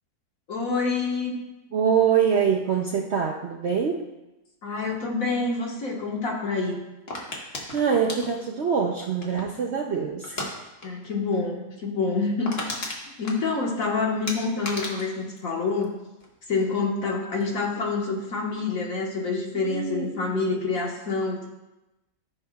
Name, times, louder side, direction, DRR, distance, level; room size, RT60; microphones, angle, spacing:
voice 1, 0.5-1.4 4.6-6.8 10.8-12.9 13.2-15.9 16.5-21.5, left 4 dB, 60° left, -2 dB, 1.8 m, -27 dB
voice 2, 1.7-4.1 7.7-10.6 19.6-20.4, right 7 dB, 60° right, 1 dB, 0.7 m, -24 dB
sound 1, 7.1-9.6 10.2-10.5 10.8-11.1 11.3-11.4 11.8-11.9 12.2-13.9 14.3-16.3 16.6-17.0, left 2 dB, 40° left, 1.5 m, -35 dB
14.0 x 6.7 x 2.3 m, 1.0 s
omnidirectional pair, 1.7 m